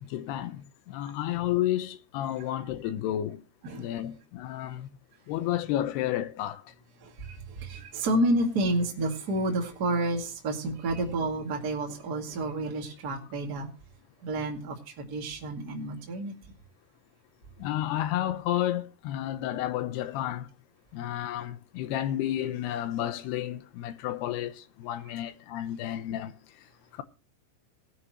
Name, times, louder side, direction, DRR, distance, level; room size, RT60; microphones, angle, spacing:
voice 1, 0.0-3.4 3.8-4.9 5.3-6.7 17.6-20.5 20.9-26.4 26.9-27.0, left 12 dB, 80° left, 2.8 m, -31 dB
voice 2, 7.0-13.7 14.2-16.5, right 1 dB, 30° right, 2.0 m, -30 dB
19.0 x 9.6 x 3.0 m
omnidirectional pair, 4.8 m